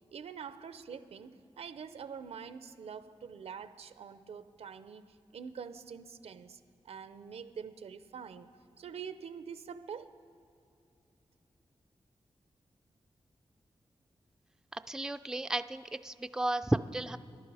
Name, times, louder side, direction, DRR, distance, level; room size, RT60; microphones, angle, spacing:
voice 1, 0.1-8.5 8.8-10.1, right 6 dB, 85° right, 0.6 m, -45 dB
voice 2, 14.7-17.2, right 1 dB, 5° right, 0.4 m, -33 dB
18.5 x 11.0 x 4.8 m
cardioid pair, 75°, 10 cm